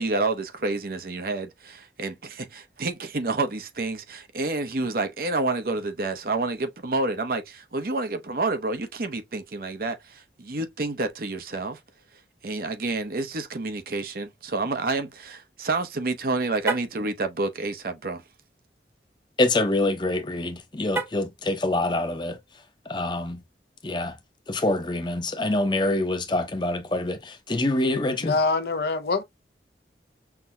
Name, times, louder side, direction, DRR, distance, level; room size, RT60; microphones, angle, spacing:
voice 1, 0.0-11.8 12.4-18.2, right 3 dB, 55° right, 0.8 m, -29 dB
Car, 16.6-17.0 20.9-21.4, right 2 dB, 15° right, 0.6 m, -30 dB
voice 2, 19.4-22.4 22.9-23.4 23.8-24.2 24.5-28.4, left 2 dB, 25° left, 0.7 m, -25 dB
voice 3, 28.2-29.2, left 3 dB, 60° left, 0.6 m, -24 dB
5.8 x 2.7 x 2.2 m
head